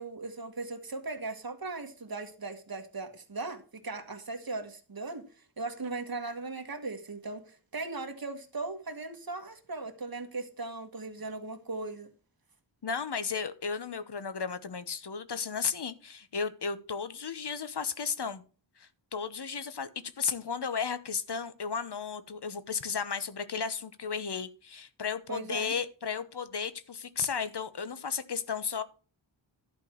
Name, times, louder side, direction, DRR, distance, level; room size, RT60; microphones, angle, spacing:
voice 1, 0.0-5.2 5.6-12.1 25.3-25.7, right 3 dB, 50° right, 1.7 m, -38 dB
voice 2, 12.8-18.4 18.8-28.8, left 6 dB, 60° left, 1.0 m, -34 dB
11.5 x 4.5 x 7.0 m
wide cardioid pair, 70°, 45 cm